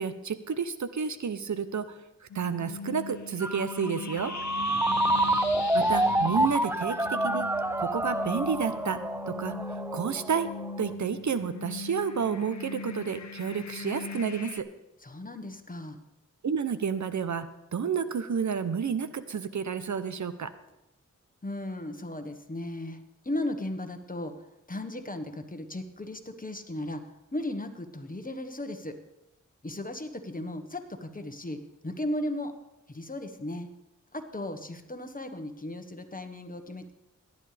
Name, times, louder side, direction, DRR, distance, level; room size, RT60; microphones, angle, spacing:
voice 1, 0.0-1.9 2.2-4.3 5.7-7.5 7.8-10.5 10.8-14.7 16.4-17.5 17.7-20.5, right 6 dB, 70° right, 12 dB, 0.7 m, -30 dB
sound 1, 2.3-14.6, left 4 dB, 65° left, 0.8 m, -40 dB
Ringtone, 3.4-10.9, right 1 dB, 10° right, 0.5 m, -28 dB
voice 2, 4.6-5.2 15.0-16.0 21.4-29.0 29.6-32.5 32.9-33.7 34.1-36.9, left 1 dB, 30° left, 7 dB, 1.3 m, -36 dB
17.5 x 11.0 x 3.4 m, 0.92 s
wide cardioid pair, 60°, 30 cm